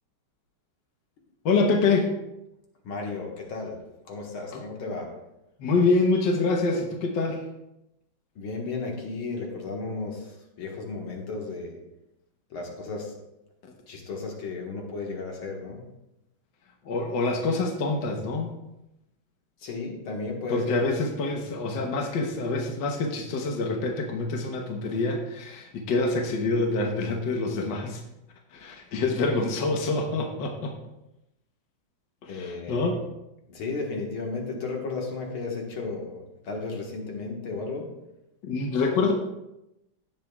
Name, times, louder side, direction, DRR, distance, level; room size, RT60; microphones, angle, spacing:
voice 1, 1.4-2.1 5.6-7.4 16.8-18.5 20.5-28.0 28.5-30.7 32.2-33.0 38.4-39.1, left 3 dB, 65° left, 2 dB, 1.7 m, -26 dB
voice 2, 2.8-3.8 4.1-5.1 8.4-10.3 10.6-11.8 12.5-13.1 13.9-15.8 19.6-20.8 32.3-32.9 33.5-37.9, left 3 dB, 85° left, 1 dB, 2.4 m, -34 dB
16.5 x 7.3 x 2.4 m, 0.90 s
omnidirectional pair, 2.2 m